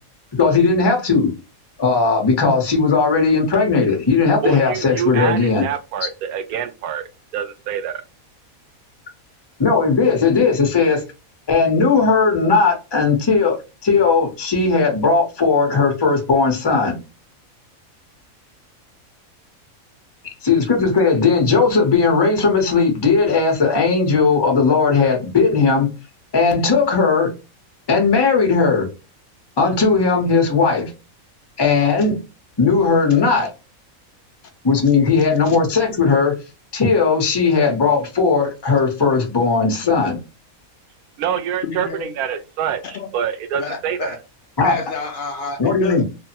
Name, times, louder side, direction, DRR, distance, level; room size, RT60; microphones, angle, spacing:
voice 1, 0.3-1.3 1.8-5.6 9.6-11.0 11.5-13.6 13.8-17.0 20.4-25.9 26.3-27.3 27.9-28.9 29.6-30.9 31.6-32.2 32.6-33.5 34.6-36.4 36.7-40.2 44.6-44.8 45.6-46.0, left 4 dB, 25° left, 0.6 m, -17 dB
voice 2, 4.4-8.0 41.2-44.2, right 8 dB, 90° right, 1.1 m, -26 dB
voice 3, 39.6-40.0 41.6-42.1 42.9-43.1 43.6-44.2 44.6-46.0, left 4 dB, 75° left, 0.4 m, -29 dB
3.2 x 2.1 x 2.7 m
omnidirectional pair, 1.5 m